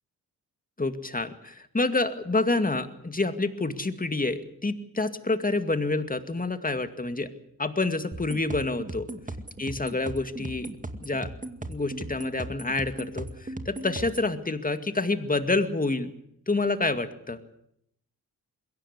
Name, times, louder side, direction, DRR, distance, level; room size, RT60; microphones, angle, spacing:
voice 1, 0.8-7.3 7.6-9.1 9.6-10.7 11.0-11.3 11.7-16.1 16.5-17.4, left 3 dB, 20° left, 9 dB, 2.2 m, -28 dB
sound 1, 8.1-14.3, right 2 dB, 20° right, 2.2 m, -38 dB
22.0 x 16.5 x 8.1 m, 0.74 s
cardioid pair, 70°, 37 cm